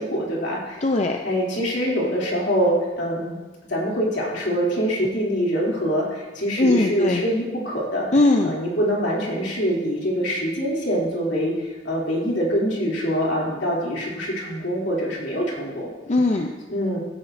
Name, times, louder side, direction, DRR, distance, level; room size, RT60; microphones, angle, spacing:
voice 1, 0.0-0.8 1.2-3.4 3.7-8.1 8.4-15.9 16.7-17.0, equal, 70° left, -4 dB, 3.0 m, -24 dB
voice 2, 0.8-1.2 6.6-7.2 8.1-8.6 16.1-16.5, left 2 dB, 35° left, 3 dB, 0.5 m, -20 dB
15.5 x 10.0 x 2.7 m, 1.3 s
head